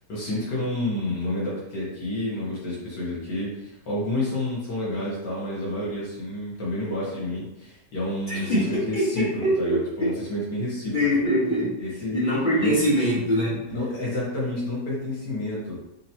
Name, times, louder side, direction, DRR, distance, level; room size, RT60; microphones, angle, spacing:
voice 1, 0.1-9.2 9.6-11.0 11.8-12.2 12.6-12.9 13.7-15.8, left 1 dB, 70° left, -6 dB, 2.0 m, -29 dB
voice 2, 8.3-10.1 10.9-11.8 12.1-13.6, equal, 30° left, -7 dB, 1.2 m, -23 dB
5.0 x 2.8 x 2.8 m, 0.86 s
omnidirectional pair, 1.9 m